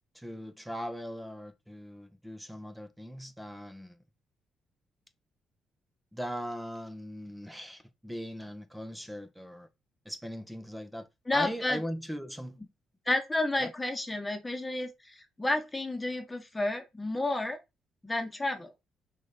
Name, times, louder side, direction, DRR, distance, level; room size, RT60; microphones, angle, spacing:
voice 1, 0.1-4.0 6.1-9.7 10.0-12.6 13.6-13.7, equal, 5° right, 1.5 m, -40 dB
voice 2, 11.3-11.8 13.1-17.6 18.0-18.7, left 2 dB, 15° left, 1.9 m, -31 dB
6.1 x 4.4 x 5.4 m
cardioid pair, 90°, 0 cm